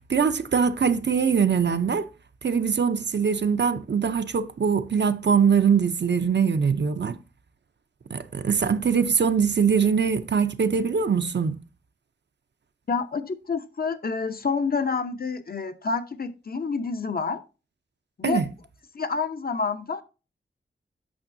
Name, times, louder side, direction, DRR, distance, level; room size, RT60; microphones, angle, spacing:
voice 1, 0.1-2.1 2.4-7.2 8.1-11.6 18.2-18.4, right 6 dB, 65° right, 0.6 m, -22 dB
voice 2, 12.9-17.4 18.2-18.4 18.9-20.0, left 4 dB, 50° left, 0.8 m, -28 dB
8.7 x 6.3 x 2.6 m
wide cardioid pair, 70°, 19 cm